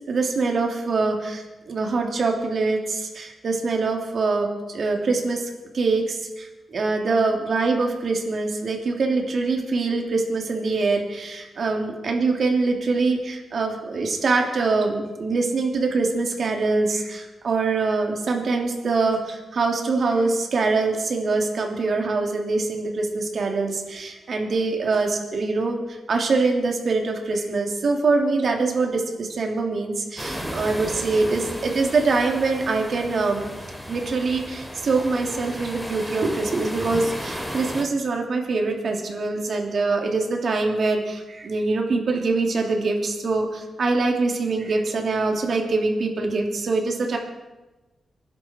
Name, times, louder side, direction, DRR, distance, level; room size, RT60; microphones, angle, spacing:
voice 1, 0.1-4.5 4.7-25.8 26.1-33.5 33.9-47.2, right 3 dB, 65° right, 2 dB, 3.0 m, -24 dB
sound 1, 30.2-37.9, equal, ahead, 2.7 m, -34 dB
27.5 x 11.5 x 4.6 m, 1.1 s
cardioid pair, 90°, 0 cm